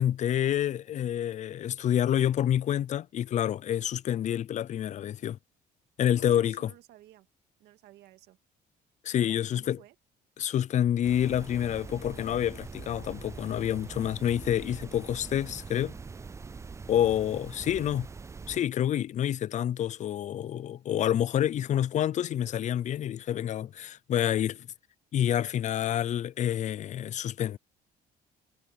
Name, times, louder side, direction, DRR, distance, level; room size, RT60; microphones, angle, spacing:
voice 1, 0.0-5.4 6.0-6.7 9.0-9.8 10.4-15.9 16.9-18.1 18.5-24.7 25.1-27.6, left 10 dB, 45° left, 0.5 m, -28 dB
voice 2, 6.2-7.3 7.6-8.4 9.1-10.0, right 15 dB, 85° right, 2.0 m, -55 dB
sound 1, 11.0-18.6, right 4 dB, 15° right, 0.4 m, -43 dB
cardioid pair, 110°, 17 cm